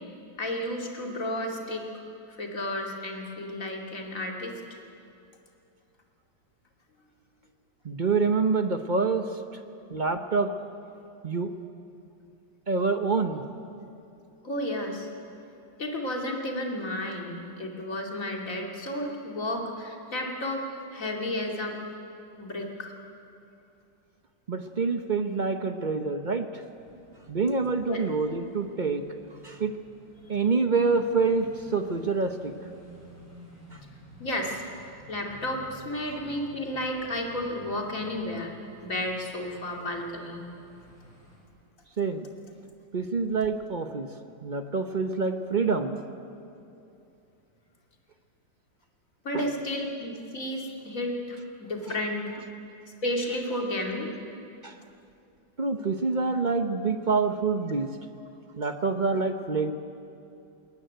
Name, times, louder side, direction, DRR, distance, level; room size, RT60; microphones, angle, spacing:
voice 1, 0.4-1.9 2.4-4.8 14.4-15.1 15.8-20.6 20.9-21.8 22.4-22.9 27.9-28.0 34.2-34.6 35.1-38.5 38.8-40.5 49.2-52.3 53.0-54.1, left 1 dB, 45° left, 0 dB, 3.0 m, -32 dB
voice 2, 7.8-9.3 9.9-10.5 11.2-11.5 12.7-13.4 24.5-26.6 27.3-29.0 29.4-29.7 30.3-32.5 42.0-42.3 42.9-44.1 44.4-46.0 49.3-49.5 54.6-54.8 55.6-57.9 58.6-59.7, right 4 dB, 40° right, 7 dB, 0.6 m, -26 dB
sound 1, 26.7-41.4, right 1 dB, 5° right, 7.4 m, -52 dB
21.0 x 18.5 x 9.4 m, 2.7 s
omnidirectional pair, 2.0 m